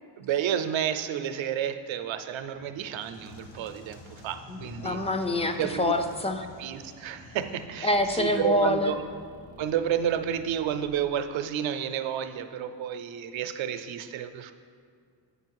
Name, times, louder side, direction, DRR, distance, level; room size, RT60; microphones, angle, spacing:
voice 1, 0.2-5.0 5.5-5.9 6.6-9.0 9.6-14.5, right 9 dB, 85° right, 9 dB, 0.6 m, -31 dB
sound 1, 2.4-7.7, left 2 dB, 75° left, 1.0 m, -48 dB
voice 2, 4.5-6.5 7.8-8.9, left 1 dB, 15° left, 7 dB, 0.4 m, -26 dB
sound 2, 7.9-13.0, left 1 dB, 50° left, 1.5 m, -51 dB
8.1 x 5.6 x 4.6 m, 2.1 s
wide cardioid pair, 125°, 45 cm